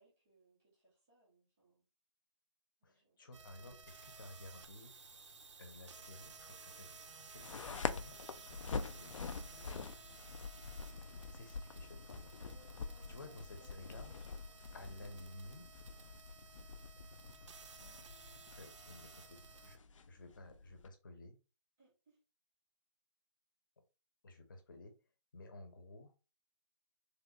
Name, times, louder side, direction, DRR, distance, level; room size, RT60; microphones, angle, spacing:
voice 1, 0.0-1.8 2.8-3.3 8.7-9.7 12.5-15.4 21.8-22.2, right 2 dB, 5° right, -7 dB, 0.3 m, -69 dB
voice 2, 2.8-5.2 5.6-8.2 8.9-9.3 11.1-12.3 13.1-13.4 13.7-14.1 14.7-15.8 18.5-19.8 20.1-21.4 24.2-24.9 25.3-26.1, left 2 dB, 40° left, 5 dB, 0.8 m, -54 dB
sound 1, 3.3-19.8, right 4 dB, 65° right, 0.5 m, -56 dB
sound 2, 7.4-20.9, left 5 dB, 80° left, 0.4 m, -46 dB
3.2 x 2.3 x 2.8 m, 0.31 s
hypercardioid pair, 165°, 16 cm